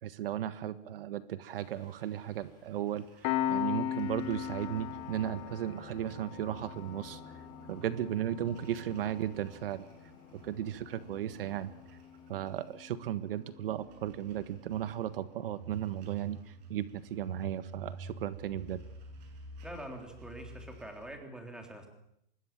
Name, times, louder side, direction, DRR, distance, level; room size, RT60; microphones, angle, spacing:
voice 1, 0.0-7.4 7.7-9.9 10.4-11.7 12.3-18.8, right 11 dB, 70° right, 12 dB, 1.5 m, -35 dB
Singing, 1.5-12.8, left 3 dB, 15° left, 6.6 m, -55 dB
sound 1, 1.8-21.1, right 2 dB, 45° right, 7.8 m, -51 dB
Piano, 3.2-14.3, left 11 dB, 30° left, 1.3 m, -40 dB
voice 2, 19.6-21.9, right 1 dB, 5° right, 3 dB, 3.4 m, -45 dB
25.0 x 21.0 x 7.5 m, 0.76 s
supercardioid pair, 165°, 30 cm